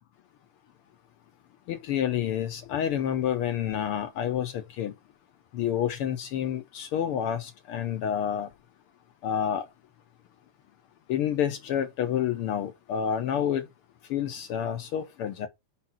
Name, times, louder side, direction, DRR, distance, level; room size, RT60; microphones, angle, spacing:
voice 1, 1.7-4.9 5.5-8.5 9.2-9.7 11.1-13.6 14.1-15.5, left 9 dB, 75° left, 1.3 m, -29 dB
5.2 x 4.2 x 5.6 m
omnidirectional pair, 3.3 m